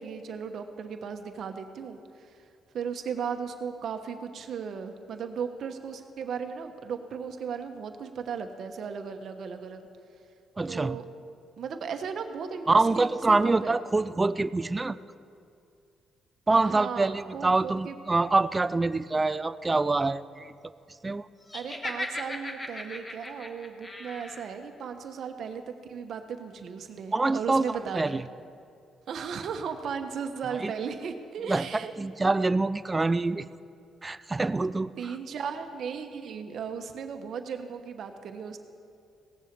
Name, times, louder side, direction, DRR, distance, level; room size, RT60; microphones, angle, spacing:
voice 1, 0.0-2.4 2.7-9.9 10.6-11.1 11.6-13.8 16.5-17.9 21.5-28.2 29.1-31.9 35.0-38.6, right 6 dB, 65° right, 6 dB, 1.1 m, -36 dB
voice 2, 10.6-11.0 12.7-15.0 16.5-20.5 21.0-21.3 27.1-28.2 30.6-30.7 31.5-33.5 34.0-34.9, right 3 dB, 20° right, 15 dB, 0.4 m, -25 dB
Laughter, 21.5-24.5, left 1 dB, 25° left, 1.3 m, -37 dB
17.0 x 7.4 x 6.8 m, 2.4 s
cardioid pair, 90°, 0 cm